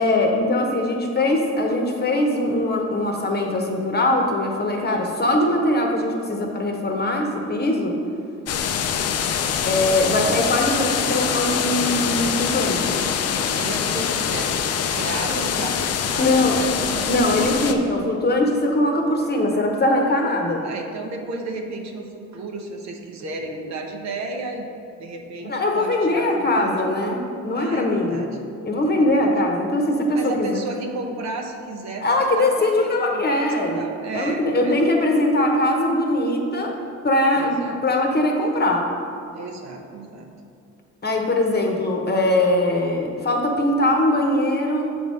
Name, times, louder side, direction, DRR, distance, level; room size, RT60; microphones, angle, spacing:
voice 1, 0.0-8.0 9.6-12.8 16.2-16.6 17.1-20.6 25.4-28.2 28.6-30.6 32.0-33.8 34.1-36.8 37.0-37.5 37.8-38.9 41.0-44.9, left 1 dB, 35° left, 1 dB, 0.9 m, -21 dB
sound 1, 8.5-17.7, left 7 dB, 55° left, 0.5 m, -24 dB
voice 2, 13.6-17.8 20.6-24.7 25.0-26.8 27.5-28.3 28.8-29.3 30.1-34.8 37.3-37.8 39.3-40.3, right 2 dB, 65° right, 3 dB, 0.8 m, -33 dB
7.0 x 3.5 x 5.4 m, 2.5 s
cardioid pair, 90°, 30 cm